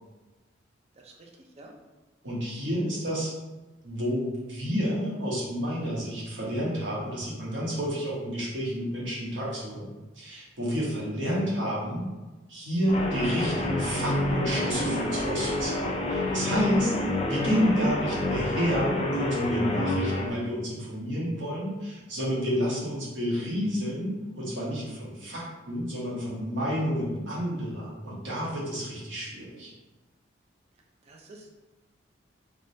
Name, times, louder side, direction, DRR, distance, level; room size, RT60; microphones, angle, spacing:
voice 1, 0.9-1.7 2.6-2.8 25.2-25.4 31.0-31.5, right 2 dB, 35° right, 0 dB, 0.5 m, -50 dB
voice 2, 2.2-3.3 3.8-12.0 12.5-16.9 17.3-29.7, equal, 75° right, -5 dB, 1.2 m, -30 dB
Guitar, 12.9-20.3, left 1 dB, 30° left, 0.4 m, -28 dB
3.5 x 3.1 x 2.7 m, 1.2 s
head